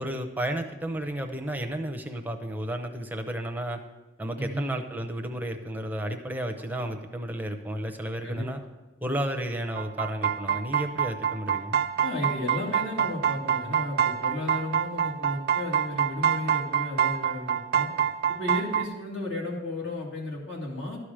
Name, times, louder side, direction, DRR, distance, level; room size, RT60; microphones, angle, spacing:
voice 1, 0.0-3.8 4.2-8.6 9.0-11.8, right 1 dB, 10° right, 5 dB, 0.7 m, -32 dB
voice 2, 4.4-4.7 6.8-6.9 8.2-8.5 12.0-17.9 18.3-21.0, left 1 dB, 65° left, -3 dB, 2.5 m, -33 dB
sound 1, 9.7-18.8, right 8 dB, 55° right, 0.5 m, -26 dB
12.0 x 5.0 x 7.4 m, 1.1 s
head